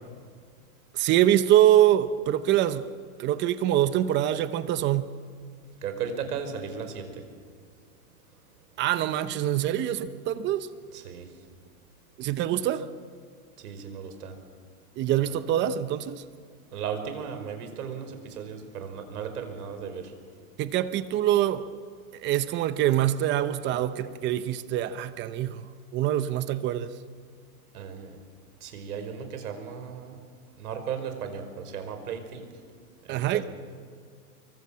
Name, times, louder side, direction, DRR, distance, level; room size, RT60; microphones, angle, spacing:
voice 1, 0.9-2.9 3.2-5.2 8.8-10.7 12.2-12.9 15.0-16.2 20.6-21.7 22.1-25.7 25.9-26.9 33.1-33.4, right 12 dB, 25° right, 13 dB, 0.8 m, -24 dB
voice 2, 5.8-7.2 10.9-11.3 13.6-14.3 15.2-15.3 16.7-20.0 27.7-28.2 28.6-30.1 30.6-32.5 33.1-33.4, right 7 dB, 85° right, 7 dB, 5.1 m, -36 dB
25.5 x 24.0 x 7.5 m, 2.1 s
supercardioid pair, 150°, 44 cm